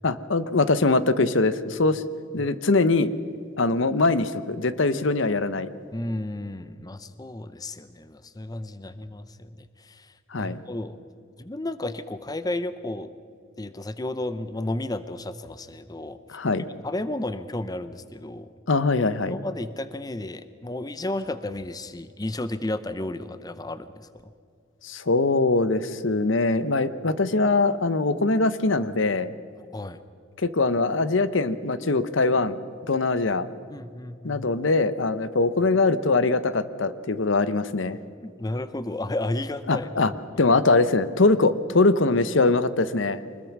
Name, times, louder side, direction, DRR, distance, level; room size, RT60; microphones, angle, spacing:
voice 1, 0.0-2.0 2.3-3.1 3.6-5.7 10.3-10.6 16.3-16.7 18.7-19.4 24.8-29.3 30.4-32.6 32.9-33.5 34.2-38.0 39.7-40.1 40.4-43.2, left 3 dB, 70° left, 14 dB, 0.9 m, -22 dB
voice 2, 5.9-9.5 9.8-11.0 11.4-13.1 13.6-16.2 16.8-18.5 19.3-24.1 29.7-30.0 33.7-34.4 38.2-40.1, left 1 dB, 20° left, 13 dB, 0.6 m, -32 dB
24.5 x 20.5 x 6.0 m, 2.3 s
head